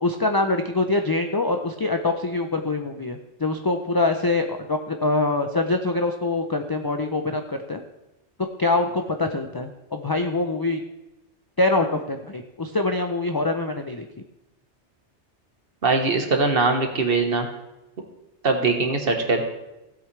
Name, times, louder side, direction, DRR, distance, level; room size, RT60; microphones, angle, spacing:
voice 1, 0.0-7.8 8.6-10.8 11.6-14.0, left 2 dB, 30° left, 5 dB, 0.4 m, -24 dB
voice 2, 15.8-17.5 18.4-19.4, right 3 dB, 55° right, 5 dB, 1.5 m, -21 dB
16.5 x 8.1 x 3.3 m, 0.98 s
omnidirectional pair, 1.2 m